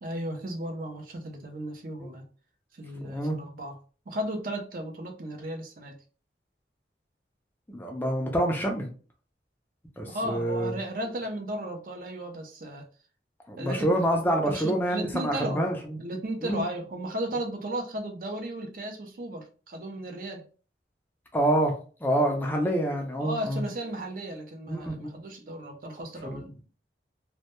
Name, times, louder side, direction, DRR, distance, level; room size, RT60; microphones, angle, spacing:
voice 1, 0.0-2.3 2.7-3.8 4.1-6.0 10.1-12.9 13.6-14.0 14.4-15.7 16.0-20.5 22.6-22.7 23.2-26.5, right 1 dB, 50° right, 0.5 m, -35 dB
voice 2, 3.0-3.4 7.7-8.9 10.0-10.7 13.5-15.7 16.5-16.6 21.3-21.7 22.0-23.6 24.7-25.2 26.2-26.4, right 1 dB, 10° left, 0.3 m, -27 dB
2.1 x 2.1 x 2.8 m
head